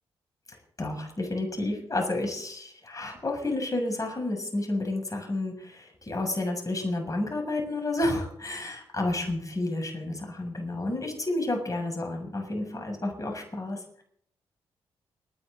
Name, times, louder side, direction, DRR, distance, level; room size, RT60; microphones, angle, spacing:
voice 1, 0.5-14.0, left 2 dB, 30° left, 2 dB, 7.0 m, -31 dB
29.5 x 10.5 x 4.0 m, 0.67 s
supercardioid pair, 45°, 11 cm